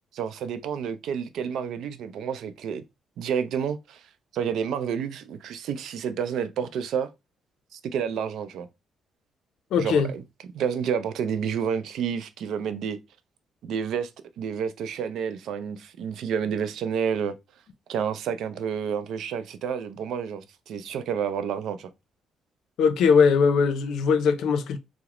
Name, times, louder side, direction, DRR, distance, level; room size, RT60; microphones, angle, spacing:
voice 1, 0.1-2.8 3.2-4.1 4.3-7.1 7.7-8.7 9.8-10.2 10.5-13.0 13.6-14.1 14.4-17.3 17.9-21.9, right 7 dB, 75° right, 0.4 m, -29 dB
voice 2, 9.7-10.1 22.8-24.8, left 5 dB, 80° left, 0.5 m, -20 dB
4.8 x 2.0 x 2.9 m
cardioid pair, 90°, 0 cm